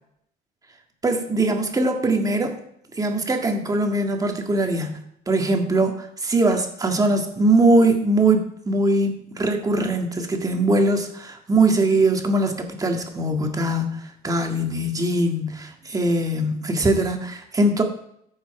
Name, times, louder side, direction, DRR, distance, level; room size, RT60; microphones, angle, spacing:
voice 1, 1.0-2.6 3.0-5.0 5.3-17.8, right 2 dB, 20° right, 4 dB, 1.8 m, -21 dB
14.5 x 5.7 x 4.9 m, 0.73 s
cardioid pair, 110°, 17 cm